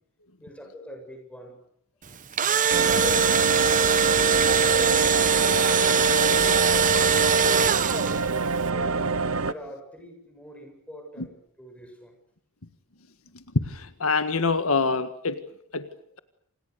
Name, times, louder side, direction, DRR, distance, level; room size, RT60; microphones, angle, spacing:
voice 1, 0.4-1.6 2.7-4.1 8.0-12.1, equal, 5° left, 4 dB, 8.0 m, -42 dB
Engine / Drill, 2.1-8.4, right 6 dB, 35° right, 1.2 m, -21 dB
sound 1, 2.7-9.5, right 3 dB, 70° right, 1.2 m, -27 dB
voice 2, 13.6-15.4 15.7-15.9, left 4 dB, 70° left, 10 dB, 1.7 m, -26 dB
29.5 x 27.0 x 6.8 m, 0.71 s
head